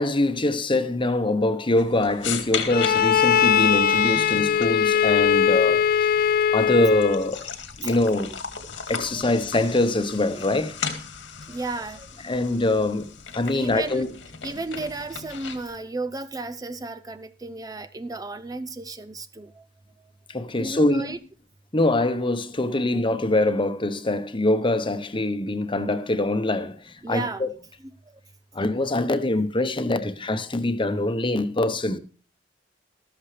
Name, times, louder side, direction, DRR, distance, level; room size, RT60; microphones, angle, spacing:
voice 1, 0.0-6.1 6.5-7.5 7.8-8.4 8.9-10.8 12.2-14.1 20.3-21.1 21.7-27.5 28.5-32.0, left 2 dB, 30° left, 1.0 m, -24 dB
sound 1, 1.8-15.8, left 6 dB, 85° left, 2.1 m, -37 dB
Bowed string instrument, 2.7-7.3, left 8 dB, 55° left, 0.5 m, -20 dB
voice 2, 11.5-12.1 13.5-14.0 14.4-19.6 20.6-21.2 22.7-23.0 24.1-24.2 27.0-27.5, right 3 dB, 20° right, 0.5 m, -34 dB
13.5 x 13.0 x 3.3 m
head